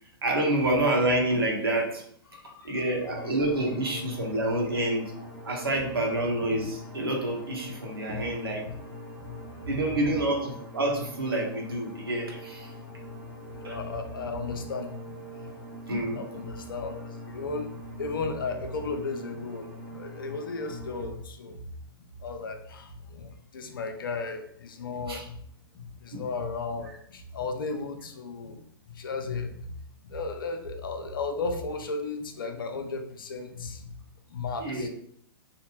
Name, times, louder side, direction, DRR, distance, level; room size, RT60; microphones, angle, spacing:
voice 1, 0.2-2.0 2.6-5.1 5.4-8.7 9.7-12.7 13.6-13.8 15.9-16.2 25.1-25.2 26.1-26.3 34.6-34.9, right 1 dB, 75° right, 0 dB, 0.8 m, -28 dB
voice 2, 2.3-2.8 6.0-6.1 8.1-8.2 8.6-8.7 9.2-9.8 13.6-15.6 16.1-21.7 22.2-25.4 25.7-28.6 28.9-29.8 30.0-33.9 34.3-34.9, left 4 dB, 65° left, 6 dB, 0.5 m, -35 dB
sound 1, 3.0-21.1, left 1 dB, 30° right, 1.1 m, -43 dB
2.8 x 2.1 x 3.0 m, 0.67 s
figure-of-eight pair, 105°, 12 cm